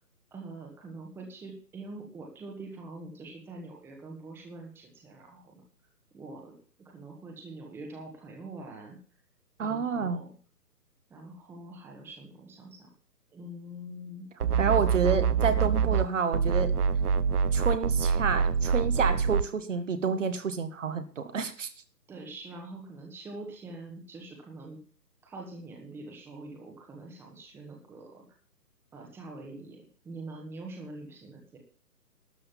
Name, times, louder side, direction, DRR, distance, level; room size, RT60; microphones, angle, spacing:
voice 1, 0.3-5.6 6.1-6.5 6.8-9.0 9.6-10.3 11.1-12.9 13.3-14.3 22.1-24.8 25.2-28.2 28.9-31.6, right 2 dB, 5° right, 0 dB, 1.5 m, -44 dB
voice 2, 9.6-10.2 14.6-16.7 17.5-21.7, right 6 dB, 50° right, 9 dB, 1.6 m, -29 dB
sound 1, 14.4-16.1 16.3-19.5, right 6 dB, 70° right, 0.9 m, -25 dB
12.5 x 6.4 x 7.4 m, 0.42 s
figure-of-eight pair, 145°, 48 cm